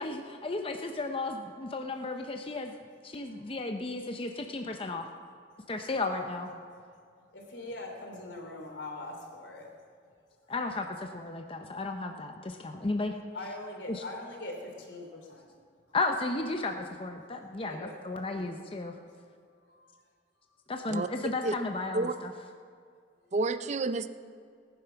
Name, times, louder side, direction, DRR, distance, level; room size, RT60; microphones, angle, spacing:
voice 1, 0.0-2.8 3.0-5.1 5.7-6.5 10.5-13.2 13.9-14.0 15.9-18.9 20.7-22.3, left 3 dB, 30° left, 4 dB, 0.7 m, -34 dB
voice 2, 3.1-3.5 6.0-6.5 7.3-10.0 10.4-10.5 13.3-15.5 17.7-18.5 18.8-20.0 20.4-20.7 23.2-23.4, left 2 dB, 85° left, 1 dB, 3.1 m, -44 dB
voice 3, 23.3-24.1, right 3 dB, 40° right, 11 dB, 0.5 m, -29 dB
18.5 x 9.9 x 5.8 m, 2.2 s
head